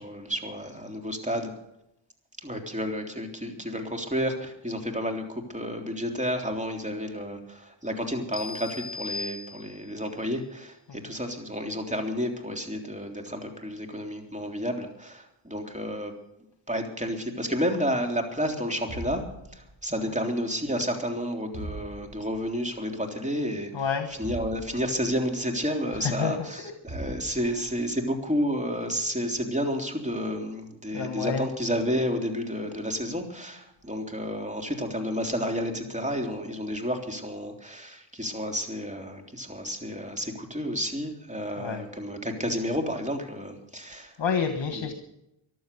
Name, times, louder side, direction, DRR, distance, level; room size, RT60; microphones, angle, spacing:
voice 1, 0.0-1.5 2.4-16.1 16.7-19.2 19.5-23.7 24.2-44.1, equal, 15° right, 3 dB, 3.4 m, -31 dB
sound 1, 8.3-10.1, left 3 dB, 20° left, 0.8 m, -37 dB
sound 2, 18.9-20.0 21.5-22.5 24.2-25.3 26.9-27.8, right 1 dB, 45° right, 6.0 m, -40 dB
voice 2, 23.7-24.1 26.0-26.7 30.9-31.5 41.6-41.8 43.9-44.9, left 6 dB, 65° left, 6 dB, 1.5 m, -29 dB
14.5 x 11.5 x 6.9 m, 0.84 s
cardioid pair, 55°, 48 cm